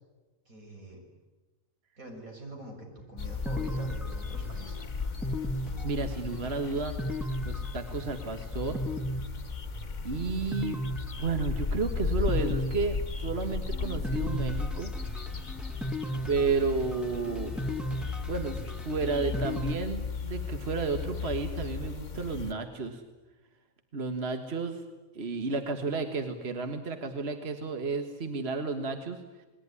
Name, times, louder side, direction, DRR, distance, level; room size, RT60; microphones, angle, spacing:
voice 1, 0.5-1.0 2.0-4.9, right 1 dB, 80° right, 1 dB, 6.6 m, -45 dB
sound 1, 3.0-19.8, left 1 dB, ahead, 1.5 m, -37 dB
sound 2, 3.2-22.5, left 5 dB, 35° left, 1.2 m, -36 dB
voice 2, 5.8-6.9 7.5-8.8 10.0-10.8 11.2-14.9 16.2-17.6 18.3-23.0 23.9-24.8 25.1-29.2, right 4 dB, 50° right, 6 dB, 1.8 m, -32 dB
29.0 x 20.5 x 9.8 m, 1.2 s
omnidirectional pair, 1.4 m